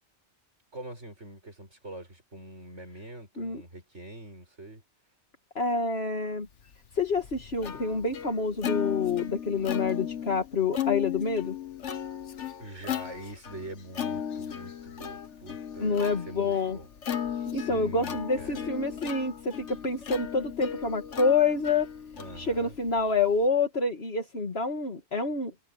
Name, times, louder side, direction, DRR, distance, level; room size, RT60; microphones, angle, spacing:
voice 1, 0.7-4.8 12.6-16.9 17.5-18.7 22.2-22.7, right 1 dB, 85° right, 7.3 m, -44 dB
voice 2, 5.6-6.5 6.9-11.6 15.8-16.8 17.5-21.9 22.4-25.5, left 4 dB, 60° left, 2.4 m, -27 dB
Plucked string instrument, 6.7-23.5, left 9 dB, 85° left, 1.5 m, -36 dB
omnidirectional pair, 1.2 m